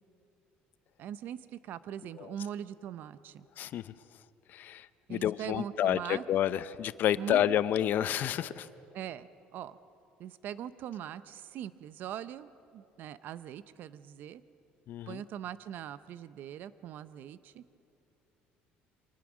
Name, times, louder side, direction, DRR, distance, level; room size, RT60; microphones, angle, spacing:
voice 1, 1.0-3.5 5.1-6.2 7.2-7.4 8.9-9.8 10.2-14.4 15.1-17.6, right 10 dB, 60° right, 15 dB, 0.7 m, -41 dB
voice 2, 3.6-3.9 4.5-8.7 14.9-15.2, left 11 dB, 55° left, 16 dB, 0.6 m, -30 dB
25.0 x 19.0 x 6.2 m, 2.8 s
cardioid pair, 130°, 4 cm